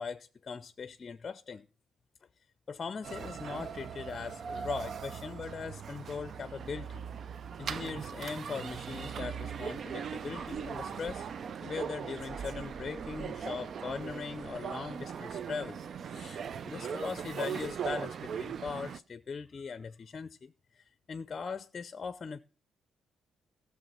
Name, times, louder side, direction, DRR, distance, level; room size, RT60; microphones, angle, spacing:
voice 1, 0.0-1.7 2.7-7.0 7.6-11.2 11.6-15.8 16.1-22.4, left 5 dB, 40° left, 0.5 m, -40 dB
sound 1, 3.0-19.0, right 7 dB, 55° right, 0.5 m, -39 dB
14.0 x 6.5 x 5.7 m
cardioid pair, 90°, 0 cm